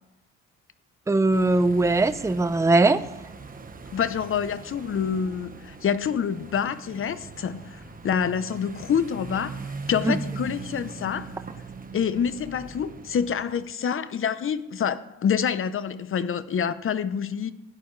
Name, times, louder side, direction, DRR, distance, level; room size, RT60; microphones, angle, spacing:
voice 1, 1.1-3.0 10.0-10.2, right 2 dB, 10° right, 0.6 m, -20 dB
sound 1, 1.3-13.7, right 4 dB, 30° right, 1.3 m, -41 dB
voice 2, 3.9-11.3 11.9-17.5, left 7 dB, 45° left, 0.8 m, -27 dB
16.5 x 10.5 x 3.3 m
cardioid pair, 90°, 30 cm